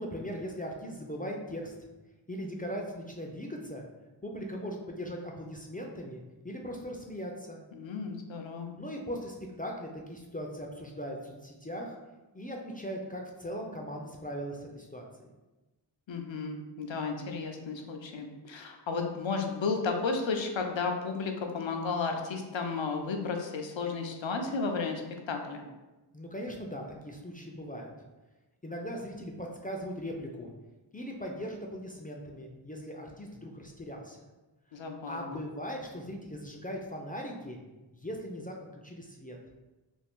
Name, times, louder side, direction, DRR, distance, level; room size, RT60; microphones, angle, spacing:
voice 1, 0.0-1.7 2.3-3.8 4.2-7.6 8.8-12.0 12.3-15.3 26.1-27.9 28.6-30.5 30.9-34.2 35.0-37.6 38.0-38.5 38.8-39.4, equal, 20° left, 0 dB, 0.4 m, -39 dB
voice 2, 7.7-8.7 16.1-25.0 25.3-25.7 34.7-35.5, left 4 dB, 80° left, 3 dB, 0.5 m, -33 dB
2.6 x 2.4 x 3.5 m, 1.1 s
wide cardioid pair, 40°, 46 cm